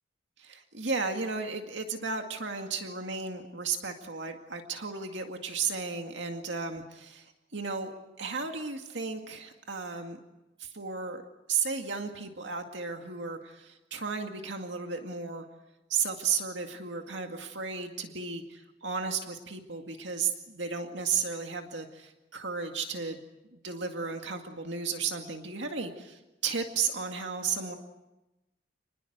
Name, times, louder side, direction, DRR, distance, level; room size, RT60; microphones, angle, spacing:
voice 1, 0.4-10.2 10.6-11.2 11.5-15.5 15.9-23.2 23.5-27.8, right 5 dB, 70° right, 4 dB, 2.1 m, -34 dB
29.5 x 21.0 x 8.0 m, 1.0 s
head